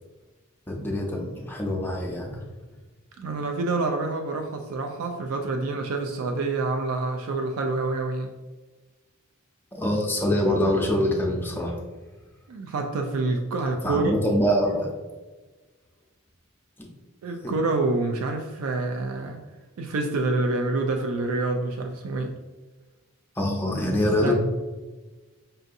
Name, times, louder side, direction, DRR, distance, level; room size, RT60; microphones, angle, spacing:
voice 1, 0.7-2.3 9.7-11.8 13.8-14.9 23.4-24.3, left 1 dB, 10° left, -1 dB, 0.5 m, -24 dB
voice 2, 3.2-8.3 12.5-14.1 17.2-19.4 19.8-22.3 24.0-24.3, right 3 dB, 85° right, 4 dB, 0.4 m, -27 dB
5.4 x 2.6 x 2.5 m, 1.3 s
head